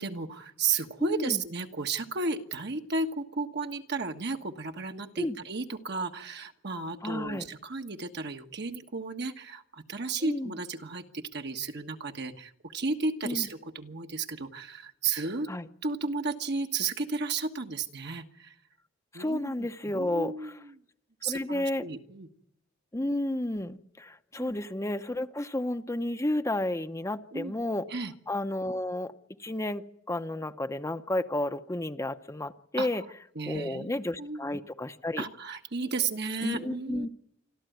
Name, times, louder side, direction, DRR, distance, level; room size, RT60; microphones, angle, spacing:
voice 1, 0.0-15.5 15.8-18.5 19.1-20.8 21.2-22.3 24.4-24.5 27.3-27.5 27.9-28.1 32.8-33.0 33.3-33.9 34.2-34.4 35.2-37.1, right 4 dB, 60° right, 5 dB, 1.4 m, -33 dB
voice 2, 1.0-1.4 5.2-5.4 7.0-7.5 10.2-10.5 13.2-13.5 15.5-15.7 19.1-20.5 21.3-21.8 22.9-27.9 28.3-29.1 29.4-33.0 33.5-35.2 36.4-37.1, left 1 dB, 15° left, 8 dB, 0.8 m, -32 dB
27.0 x 13.0 x 9.2 m, 0.79 s
head